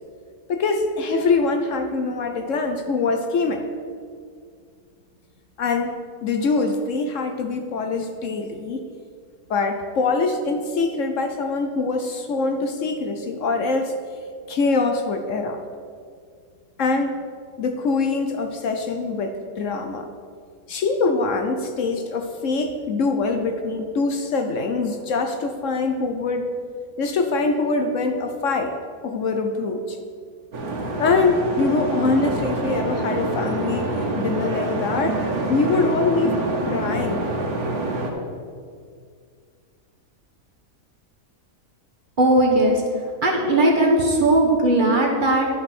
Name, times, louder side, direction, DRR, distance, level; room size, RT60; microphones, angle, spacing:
voice 1, 0.5-3.7 5.6-8.8 9.5-14.0 14.5-15.6 16.8-17.2 17.6-20.1 20.7-26.5 27.0-28.7 29.0-30.0 31.0-35.2 35.5-37.3, left 3 dB, 65° left, 6 dB, 1.0 m, -24 dB
sound 1, 30.5-38.1, right 2 dB, 80° right, 1.7 m, -26 dB
voice 2, 42.2-42.8 43.2-45.4, right 1 dB, 35° right, -1 dB, 1.3 m, -18 dB
11.5 x 5.4 x 6.0 m, 2.1 s
omnidirectional pair, 1.5 m